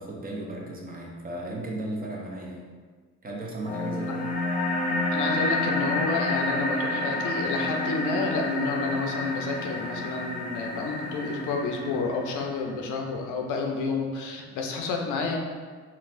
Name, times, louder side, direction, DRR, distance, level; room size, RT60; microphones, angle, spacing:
voice 1, 0.0-2.7 3.2-4.3, right 1 dB, 30° right, -2 dB, 0.6 m, -35 dB
sound 1, 3.7-12.7, left 2 dB, 25° left, 0.5 m, -29 dB
voice 2, 5.1-15.4, left 4 dB, 80° left, 1 dB, 0.5 m, -30 dB
3.8 x 2.2 x 2.6 m, 1.5 s
cardioid pair, 90°, 30 cm